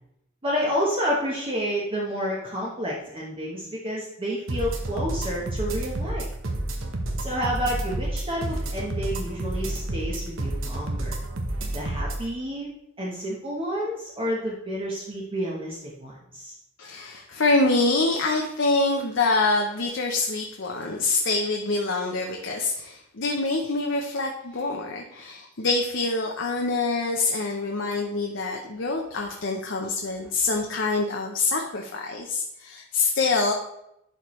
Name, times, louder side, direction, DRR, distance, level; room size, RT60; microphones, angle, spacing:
voice 1, 0.4-6.3 7.2-11.2 11.7-12.7 13.0-16.6 30.2-30.3, equal, 25° right, -4 dB, 1.1 m, -30 dB
sound 1, 4.5-12.2, right 1 dB, 65° right, 1.0 m, -30 dB
voice 2, 16.8-33.5, left 3 dB, 60° left, 1 dB, 0.8 m, -25 dB
11.0 x 4.5 x 3.2 m, 0.82 s
head